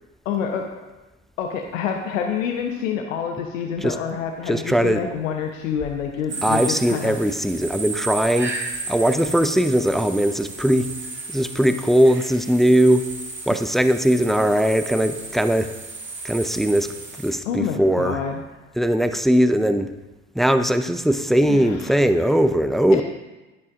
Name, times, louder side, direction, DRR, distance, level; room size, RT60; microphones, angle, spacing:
voice 1, 0.2-0.7 1.4-7.2 17.4-18.4 21.5-21.9 22.9-23.0, left 7 dB, 75° left, 3 dB, 0.9 m, -27 dB
voice 2, 4.5-5.0 6.4-8.5 8.9-10.9 11.3-13.0 13.5-15.7 16.2-16.9 17.2-18.2 18.8-19.9 20.4-23.0, equal, ahead, 10 dB, 0.4 m, -19 dB
sound 1, 6.3-17.3, right 3 dB, 30° right, 2.0 m, -34 dB
11.0 x 11.0 x 2.5 m, 1.1 s
figure-of-eight pair, 60°, 40 cm